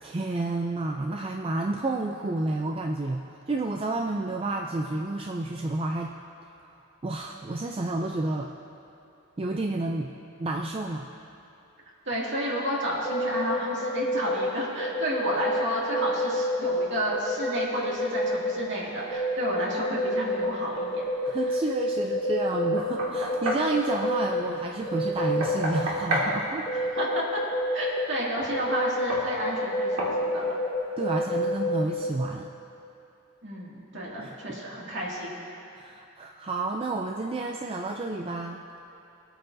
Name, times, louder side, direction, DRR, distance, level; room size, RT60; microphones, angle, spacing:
voice 1, 0.0-6.1 7.0-8.5 9.4-10.1 10.4-11.1 21.2-26.7 31.0-32.5 34.2-34.6 35.8-38.6, right 2 dB, 25° right, 1 dB, 0.4 m, -30 dB
voice 2, 12.1-21.0 21.3-21.6 26.7-27.4 27.7-30.5 33.4-35.3, equal, 60° right, -5 dB, 2.3 m, -31 dB
sound 1, 13.0-14.5 14.8-18.5 18.9-20.5 20.8-24.4 24.9-25.8 26.2-26.3 26.7-28.1 28.4-32.1, left 1 dB, 25° left, 1.4 m, -28 dB
Knock, 22.5-23.7 25.2-26.3 28.4-28.5 29.1-29.3 30.0-30.2, right 1 dB, 90° right, 2.2 m, -30 dB
22.0 x 8.9 x 2.7 m, 2.7 s
head